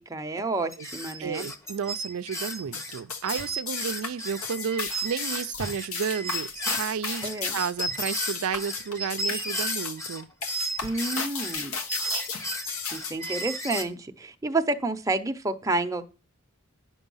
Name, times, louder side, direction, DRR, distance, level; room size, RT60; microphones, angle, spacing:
voice 1, 0.0-1.5 7.2-7.6 10.8-11.8 12.9-16.0, right 2 dB, 15° right, 0.7 m, -29 dB
sound 1, 0.7-10.2 10.5-13.8, right 1 dB, 15° left, 0.9 m, -34 dB
voice 2, 1.2-6.5 6.7-10.3 12.8-13.0, right 7 dB, 85° right, 0.4 m, -32 dB
sound 2, 2.6-13.3, left 5 dB, 85° left, 1.4 m, -34 dB
9.8 x 6.1 x 5.5 m
head